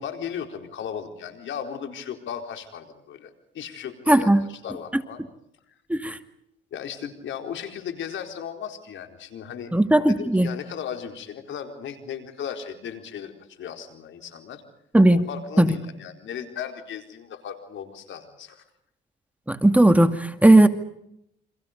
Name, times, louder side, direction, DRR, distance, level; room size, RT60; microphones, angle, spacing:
voice 1, 0.0-3.3 3.5-5.2 6.7-9.7 10.1-14.6 15.1-18.6, left 8 dB, 70° left, 6 dB, 4.4 m, -36 dB
voice 2, 4.1-4.4 5.9-6.2 9.7-10.5 14.9-15.2 15.6-15.7 19.5-20.7, right 1 dB, 5° right, 8 dB, 2.1 m, -17 dB
29.5 x 26.0 x 5.2 m, 0.77 s
cardioid pair, 90°, 20 cm